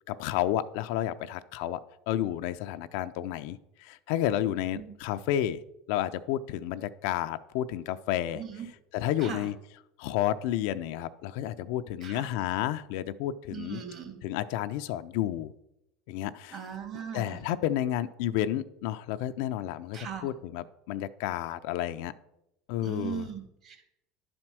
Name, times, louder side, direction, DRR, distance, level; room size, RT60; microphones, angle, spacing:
voice 1, 0.1-1.8 2.1-5.6 5.9-8.4 8.9-9.6 10.0-13.8 14.2-15.5 16.1-16.6 17.1-22.1 22.7-23.3, left 12 dB, 70° left, 12 dB, 0.5 m, -31 dB
voice 2, 8.3-8.7 9.2-9.5 12.0-12.3 13.5-14.2 16.5-17.4 19.9-20.3 22.8-23.9, right 7 dB, 45° right, 4 dB, 2.4 m, -39 dB
10.5 x 4.4 x 6.1 m, 0.85 s
supercardioid pair, 105°, 0 cm